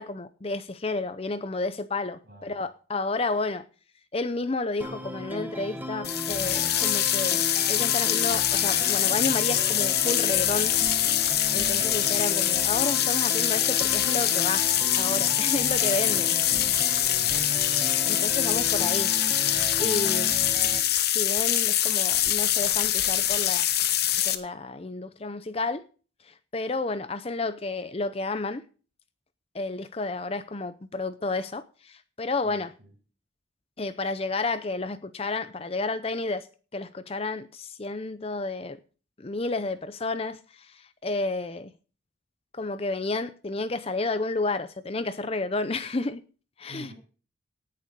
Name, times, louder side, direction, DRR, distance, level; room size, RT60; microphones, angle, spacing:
voice 1, 0.0-3.7 4.1-10.8 11.5-14.7 15.0-16.3 18.1-19.1 19.8-20.3 21.1-23.7 24.2-25.8 26.2-28.6 29.5-32.7 33.8-36.5 36.7-38.8 39.2-41.7 42.5-46.2 46.6-46.9, left 3 dB, 30° left, 0.6 m, -31 dB
voice 2, 2.2-2.6 16.0-16.9 17.2-17.8 32.4-32.9 46.7-47.0, equal, 50° right, 7.9 m, -47 dB
sound 1, 4.8-20.8, equal, 10° right, 1.3 m, -37 dB
sound 2, 6.0-24.3, left 11 dB, 50° left, 1.0 m, -24 dB
18.0 x 6.7 x 5.3 m
head